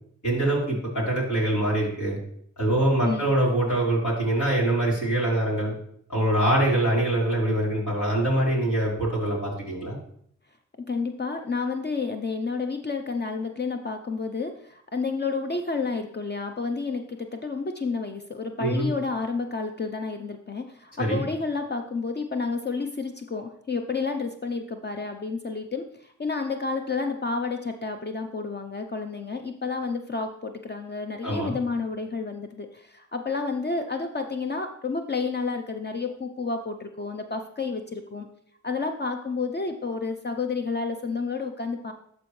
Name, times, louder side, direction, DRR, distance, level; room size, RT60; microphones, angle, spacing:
voice 1, 0.2-2.2 2.6-5.7 6.1-10.0 18.6-18.9 21.0-21.2 31.2-31.5, right 1 dB, 75° left, -5 dB, 3.5 m, -24 dB
voice 2, 3.0-3.3 10.8-38.3 38.6-41.9, left 4 dB, 35° left, 5 dB, 0.7 m, -30 dB
12.0 x 4.4 x 3.2 m, 0.67 s
cardioid pair, 50°, 30 cm